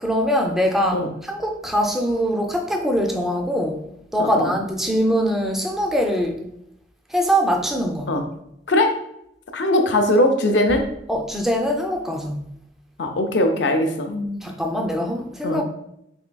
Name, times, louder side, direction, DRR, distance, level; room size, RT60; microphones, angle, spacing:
voice 1, 0.0-3.8 4.1-6.4 7.1-8.1 11.1-12.5 14.0-15.6, equal, ahead, 2 dB, 0.4 m, -23 dB
voice 2, 4.2-4.5 8.1-8.2 8.7-8.9 9.5-10.9 13.0-14.1 15.4-15.6, left 1 dB, 70° left, 5 dB, 0.5 m, -20 dB
3.5 x 3.2 x 2.2 m, 0.78 s
head